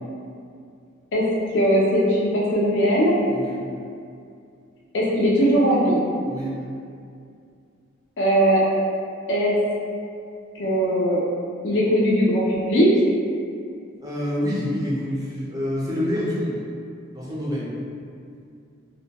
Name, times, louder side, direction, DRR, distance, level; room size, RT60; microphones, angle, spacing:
voice 1, 1.5-3.1 4.9-6.0 8.2-8.6 9.3-9.6 10.6-11.2 11.6-12.9, equal, 60° left, -5 dB, 0.4 m, -19 dB
voice 2, 6.2-6.5 14.0-16.6 17.1-17.8, left 1 dB, 15° right, -8 dB, 0.4 m, -27 dB
2.1 x 2.1 x 2.8 m, 2.4 s
head